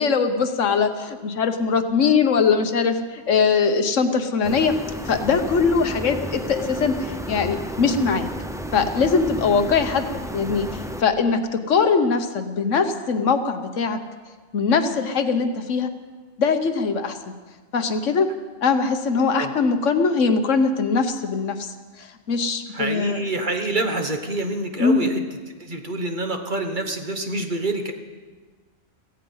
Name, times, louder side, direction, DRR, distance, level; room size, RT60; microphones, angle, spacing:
voice 1, 0.0-4.8 5.1-8.3 8.7-10.0 10.3-14.0 14.5-15.9 16.4-17.3 17.7-18.3 18.6-21.7 22.0-23.2 24.8-25.1, left 5 dB, 70° left, 8 dB, 1.4 m, -21 dB
sound 1, 4.4-11.0, equal, 5° right, 0.5 m, -32 dB
voice 2, 22.7-25.1 25.6-27.9, right 2 dB, 40° right, 5 dB, 1.3 m, -27 dB
16.0 x 16.0 x 5.5 m, 1.4 s
omnidirectional pair, 1.3 m